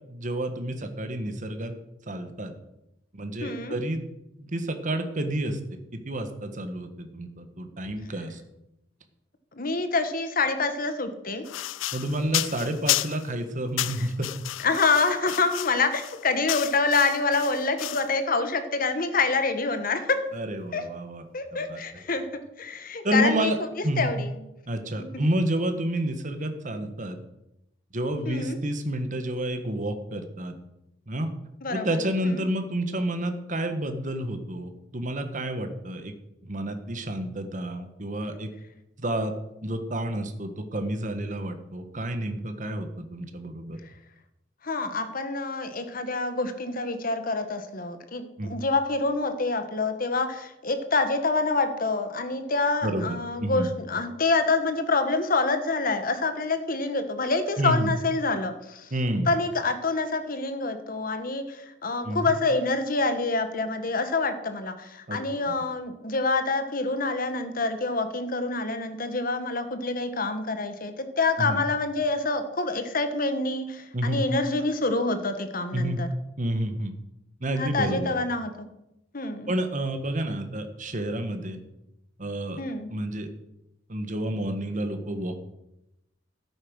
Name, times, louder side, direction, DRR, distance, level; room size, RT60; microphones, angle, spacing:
voice 1, 0.1-1.7 2.1-2.5 3.1-4.0 4.4-8.4 11.9-14.3 20.3-21.2 21.5-21.8 23.0-23.5 23.8-24.1 24.7-27.2 27.9-30.5 31.1-31.3 31.7-36.1 36.5-38.5 39.0-39.3 39.6-43.8 48.4-48.5 52.8-53.7 57.6-57.9 58.9-59.3 62.0-62.3 65.1-65.2 65.5-65.6 71.4-71.6 73.9-74.2 75.7-76.0 76.4-76.9 77.4-78.1 79.5-81.6 82.2-82.6 82.9-83.3 83.9-85.5, right 1 dB, 40° right, 8 dB, 1.5 m, -29 dB
voice 2, 3.4-3.8 9.5-11.5 14.0-14.1 14.6-20.2 20.7-20.8 21.3-23.5 24.0-24.5 25.0-25.1 28.2-28.6 31.6-32.4 44.6-58.9 59.3-76.1 77.6-78.7 79.1-79.5 82.6-82.9, left 3 dB, 45° left, 9 dB, 1.4 m, -27 dB
sound 1, 11.4-13.3 13.8-18.1, left 15 dB, 90° left, 0.4 m, -32 dB
12.5 x 8.9 x 6.4 m, 0.88 s
head